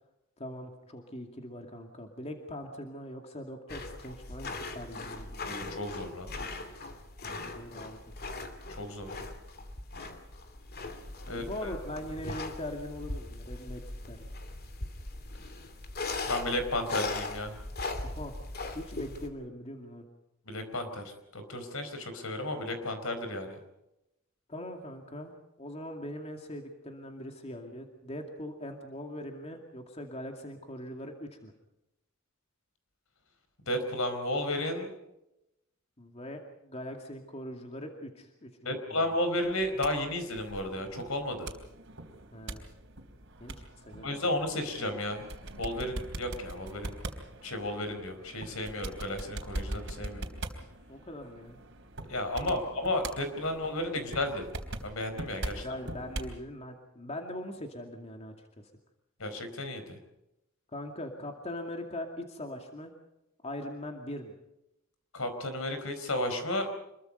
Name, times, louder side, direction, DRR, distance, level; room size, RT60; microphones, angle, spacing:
voice 1, 0.4-5.6 7.2-8.0 11.3-14.3 18.0-18.4 18.7-20.1 24.5-31.5 36.0-39.1 42.3-42.7 43.4-44.2 50.9-51.6 52.4-52.6 55.5-58.7 60.7-62.9 63.4-64.3, left 1 dB, 30° left, 3 dB, 2.4 m, -41 dB
sound 1, 3.7-19.3, left 3 dB, 45° left, 2.6 m, -39 dB
voice 2, 5.4-6.3 8.7-9.1 11.3-11.7 16.2-17.6 20.5-23.6 33.7-34.9 38.6-41.5 44.0-45.2 45.5-47.0 47.4-50.2 52.1-54.4 54.8-55.7 59.2-60.0 65.1-66.7, left 1 dB, 70° left, 8 dB, 4.6 m, -33 dB
sound 2, 39.4-56.4, right 1 dB, 60° right, 3.6 m, -42 dB
26.5 x 22.5 x 5.4 m, 0.88 s
head